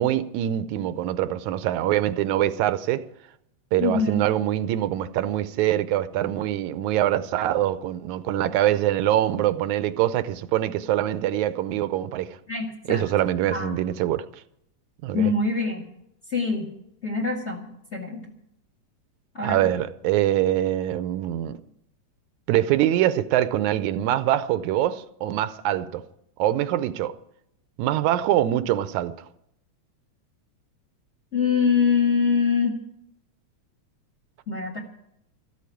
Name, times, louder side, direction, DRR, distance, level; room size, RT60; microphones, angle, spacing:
voice 1, 0.0-3.0 3.7-12.4 12.9-14.3 15.0-15.3 19.4-21.6 22.5-26.0 26.4-27.1 27.8-29.1, right 12 dB, 80° right, 2.0 m, -24 dB
voice 2, 3.8-4.2 12.5-13.0 13.5-13.8 15.1-15.8 16.3-16.7 17.0-18.2 19.3-19.7 31.3-32.8 34.5-34.8, left 5 dB, 30° left, 1.5 m, -24 dB
14.0 x 8.5 x 9.2 m
omnidirectional pair, 3.4 m